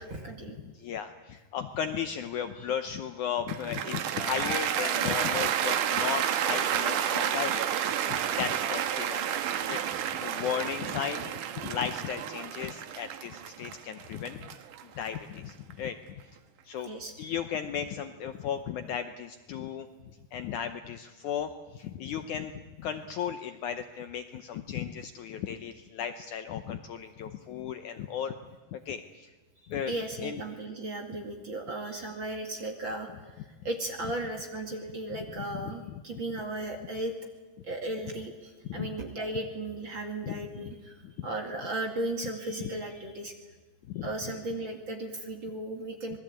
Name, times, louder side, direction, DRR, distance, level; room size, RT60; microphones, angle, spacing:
voice 1, 0.0-0.6 9.6-9.8 16.8-17.1 29.8-37.1 37.6-43.3 44.0-46.2, right 2 dB, 35° right, 3 dB, 2.5 m, -36 dB
voice 2, 0.6-9.2 9.7-9.8 10.2-11.3 11.6-14.5 15.0-16.0 16.7-16.9 17.2-19.9 20.3-22.5 22.8-28.4 28.7-29.3 29.7-30.4 35.1-35.2 35.7-36.0 38.7-38.9 40.2-40.7 41.0-41.3 42.6-42.7 43.9-44.1, left 8 dB, 70° left, 8 dB, 1.9 m, -35 dB
Cheering / Applause, 3.5-15.7, right 10 dB, 65° right, 2.4 m, -30 dB
26.5 x 20.5 x 8.8 m, 1.3 s
omnidirectional pair, 4.3 m